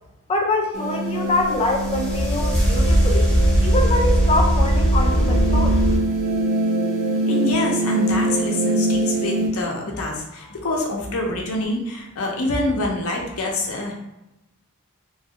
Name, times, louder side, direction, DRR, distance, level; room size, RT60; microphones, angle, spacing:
voice 1, 0.3-3.3 3.6-5.8, left 2 dB, 25° left, 1 dB, 0.4 m, -24 dB
sound 1, 0.7-9.5, right 1 dB, 75° right, 0.7 m, -24 dB
sound 2, 1.4-6.0, right 1 dB, 5° left, 1.0 m, -19 dB
voice 2, 7.3-13.9, left 2 dB, 75° left, 0 dB, 0.7 m, -26 dB
3.0 x 2.4 x 2.8 m, 0.92 s
head